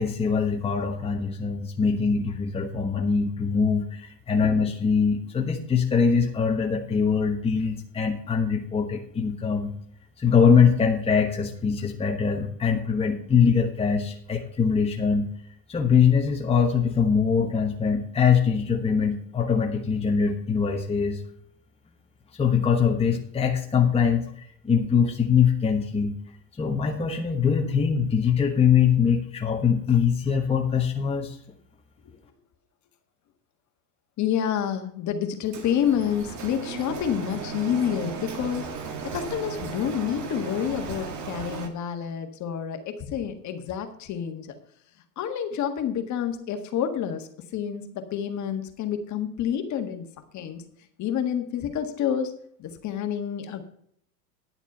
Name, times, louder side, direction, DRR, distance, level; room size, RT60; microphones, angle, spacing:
voice 1, 0.0-9.7 10.2-15.3 15.7-21.2 22.4-26.2 26.6-31.4, left 6 dB, 10° left, 2 dB, 1.2 m, -23 dB
voice 2, 34.2-38.7 39.0-44.5 45.2-50.1 50.3-50.6 51.0-52.3 52.6-53.7, left 9 dB, 35° left, 7 dB, 1.6 m, -28 dB
Printer, 35.5-41.7, right 5 dB, 35° right, 1.9 m, -36 dB
10.5 x 7.1 x 5.5 m, 0.67 s
hypercardioid pair, 95°, 48 cm